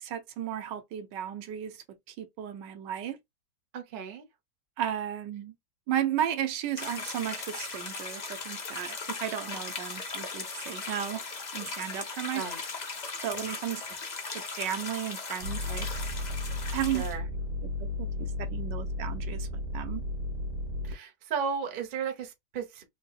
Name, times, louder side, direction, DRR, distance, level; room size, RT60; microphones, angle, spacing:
voice 1, 0.0-3.2 4.8-5.5 5.9-11.2 11.5-12.4 13.2-13.8 14.3-15.9 16.7-17.0 18.0-19.5 19.7-20.0, right 10 dB, 80° right, 1.3 m, -34 dB
voice 2, 3.7-4.3 12.3-12.6 16.8-17.3 20.8-22.9, right 6 dB, 50° right, 0.6 m, -35 dB
sound 1, 6.8-17.1, left 4 dB, 55° left, 0.4 m, -38 dB
sound 2, 15.4-20.9, left 2 dB, 65° right, 1.5 m, -34 dB
3.6 x 2.7 x 2.3 m
omnidirectional pair, 2.0 m